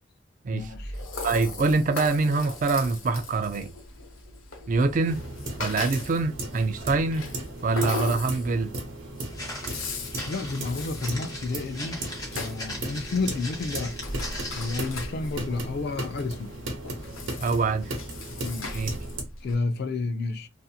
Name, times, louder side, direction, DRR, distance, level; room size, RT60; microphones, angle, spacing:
voice 1, 0.5-0.9 10.3-14.0 14.5-16.6 18.4-18.8 19.4-20.5, left 3 dB, 55° left, 0.4 m, -31 dB
Rattle (instrument), 0.6-19.5, left 3 dB, 90° left, 0.7 m, -39 dB
voice 2, 1.2-3.7 4.7-5.2 5.6-7.3 7.6-8.7 17.4-17.9 18.7-18.9, right 3 dB, 40° right, 0.3 m, -24 dB
sound 1, 5.1-19.2, right 1 dB, 75° right, 0.9 m, -37 dB
Walk footsteps, 9.3-15.0, left 1 dB, 20° left, 0.9 m, -39 dB
2.7 x 2.5 x 2.3 m
head